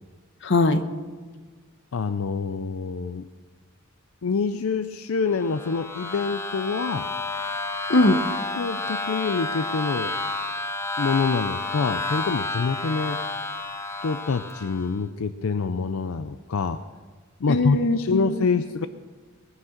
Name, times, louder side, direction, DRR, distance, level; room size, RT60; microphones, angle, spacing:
voice 1, 0.4-0.8 7.9-8.2 17.5-18.3, left 2 dB, 60° left, 10 dB, 0.9 m, -20 dB
voice 2, 1.9-3.3 4.2-7.1 8.5-10.2 11.0-13.2 14.0-16.8 17.4-18.9, left 4 dB, 75° left, 11 dB, 0.5 m, -26 dB
sound 1, 5.3-15.0, left 2 dB, 15° left, 0.8 m, -30 dB
20.0 x 9.6 x 6.5 m, 1.5 s
head